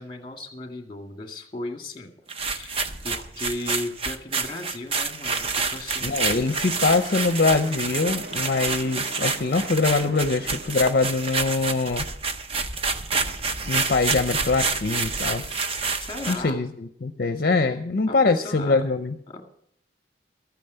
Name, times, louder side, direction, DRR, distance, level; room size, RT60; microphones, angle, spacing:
voice 1, 0.0-2.1 2.5-6.3 16.0-16.6 18.1-18.8 19.3-19.5, left 2 dB, 25° left, 4 dB, 1.9 m, -36 dB
sound 1, 2.3-16.5, right 4 dB, 30° right, 0.7 m, -28 dB
voice 2, 6.0-12.1 13.7-15.6 16.3-19.2, left 3 dB, 55° left, 8 dB, 0.6 m, -23 dB
sound 2, 6.3-11.4, right 2 dB, 55° right, 1.2 m, -42 dB
13.0 x 9.2 x 6.7 m, 0.70 s
head